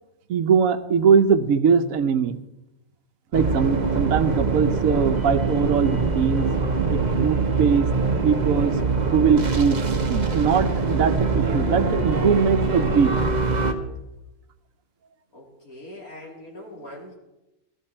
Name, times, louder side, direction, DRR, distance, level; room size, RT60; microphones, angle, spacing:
voice 1, 0.3-2.4 3.3-6.5 6.9-7.9 8.2-8.8 9.1-13.1, right 6 dB, 70° right, 9 dB, 1.2 m, -21 dB
sound 1, 3.3-13.7, right 4 dB, 30° right, 1.2 m, -23 dB
voice 2, 15.3-17.2, left 1 dB, 80° left, -2 dB, 4.0 m, -41 dB
14.5 x 14.0 x 4.4 m, 0.96 s
omnidirectional pair, 1.5 m